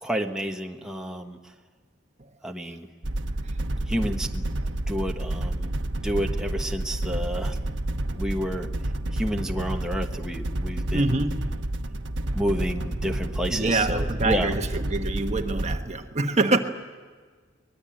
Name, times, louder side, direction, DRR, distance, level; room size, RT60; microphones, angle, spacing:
voice 1, 0.0-1.4 2.4-2.9 3.9-4.4 4.9-5.7 6.0-7.5 8.1-8.7 9.1-11.0 12.3-14.5, equal, 5° right, 1.2 m, -30 dB
sound 1, 3.0-15.8, right 1 dB, 75° right, 1.1 m, -30 dB
voice 2, 10.9-11.4 13.5-16.6, right 2 dB, 35° right, 1.3 m, -25 dB
24.0 x 20.5 x 9.0 m
head